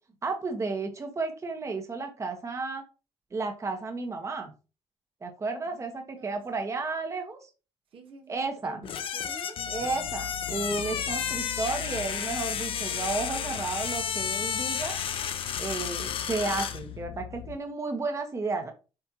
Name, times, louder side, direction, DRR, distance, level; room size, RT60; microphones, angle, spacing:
voice 1, 0.2-2.8 3.3-4.5 5.2-7.5 8.3-8.8 9.7-15.0 15.6-18.7, right 3 dB, 30° right, 1.3 m, -32 dB
voice 2, 5.7-6.4 7.9-9.7, right 4 dB, 60° right, 1.3 m, -49 dB
sound 1, 8.8-16.8, left 8 dB, 60° left, 0.8 m, -32 dB
sound 2, 9.6-17.6, left 14 dB, 90° left, 0.4 m, -42 dB
7.9 x 4.3 x 3.0 m
cardioid pair, 110°, 10 cm